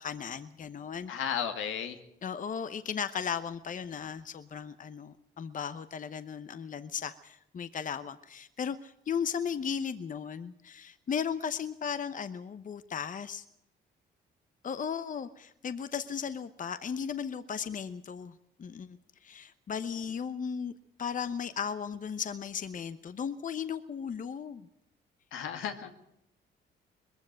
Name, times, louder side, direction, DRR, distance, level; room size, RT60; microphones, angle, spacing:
voice 1, 0.0-1.1 2.2-13.4 14.6-18.3 18.6-20.7 21.0-24.7, left 7 dB, 40° left, 12 dB, 0.9 m, -36 dB
voice 2, 1.1-2.0 25.3-25.9, left 8 dB, 85° left, 6 dB, 2.2 m, -34 dB
21.0 x 15.0 x 9.1 m, 0.79 s
cardioid pair, 90°, 20 cm